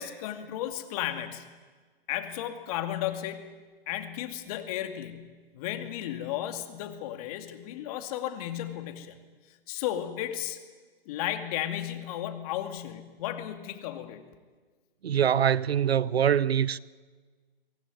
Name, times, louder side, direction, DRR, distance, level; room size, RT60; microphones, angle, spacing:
voice 1, 0.0-1.4 2.1-3.5 3.9-5.3 5.5-9.2 9.7-10.6 11.1-14.2, left 12 dB, 35° left, 2.5 m, -34 dB
voice 2, 15.0-16.8, right 9 dB, 80° right, 0.8 m, -24 dB
24.0 x 17.0 x 9.6 m
hypercardioid pair, 135°, 31 cm